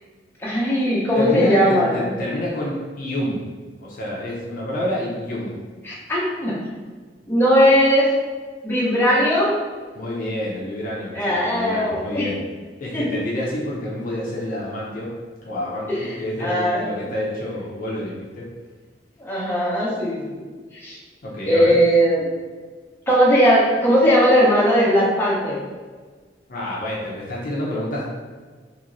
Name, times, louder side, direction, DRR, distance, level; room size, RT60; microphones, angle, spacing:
voice 1, 0.4-2.1 5.8-6.6 7.3-8.1 8.6-9.6 11.1-12.3 12.9-13.1 15.9-16.0 16.4-16.9 19.2-20.4 20.8-21.0 21.4-22.3 23.1-25.6, equal, 15° left, -7 dB, 0.7 m, -18 dB
voice 2, 1.2-3.5 3.8-5.6 9.9-12.4 12.8-15.1 15.4-18.5 21.2-21.8 26.5-28.0, left 1 dB, 50° left, -5 dB, 0.5 m, -28 dB
3.0 x 2.9 x 2.5 m, 1.4 s
head